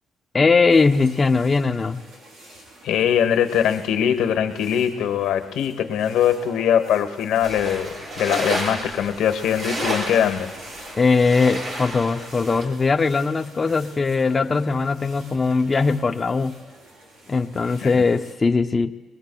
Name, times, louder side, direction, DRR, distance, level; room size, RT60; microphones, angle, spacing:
voice 1, 0.3-2.0 11.0-16.5 17.3-18.9, left 4 dB, 30° left, 5 dB, 0.4 m, -20 dB
sound 1, 0.7-18.3, right 1 dB, 85° right, 3.9 m, -47 dB
voice 2, 2.8-10.5 17.8-17.9, left 9 dB, 85° left, 7 dB, 1.0 m, -22 dB
sound 2, 7.4-12.6, right 1 dB, 60° right, 6.4 m, -31 dB
26.5 x 21.0 x 2.2 m, 1.3 s
cardioid pair, 90°, 0 cm